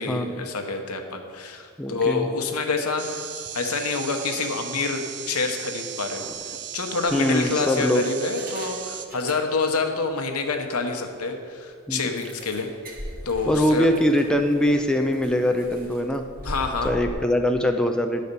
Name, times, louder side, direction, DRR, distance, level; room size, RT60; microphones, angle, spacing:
voice 1, 0.0-3.3 3.5-12.7 13.2-13.9 16.4-17.0, left 4 dB, 75° left, 4 dB, 0.9 m, -27 dB
voice 2, 1.8-2.3 6.2-6.3 7.1-8.0 11.9-12.1 13.5-16.2 16.8-18.2, equal, 5° left, 4 dB, 0.3 m, -22 dB
sound 1, 3.0-9.1, right 9 dB, 70° right, 0.6 m, -36 dB
sound 2, 6.3-6.4 7.1-7.7 8.2-9.9 10.2-10.3 10.7-10.8 11.2-11.3 12.2-17.1, equal, 40° right, 1.5 m, -40 dB
10.5 x 4.2 x 6.7 m, 2.2 s
head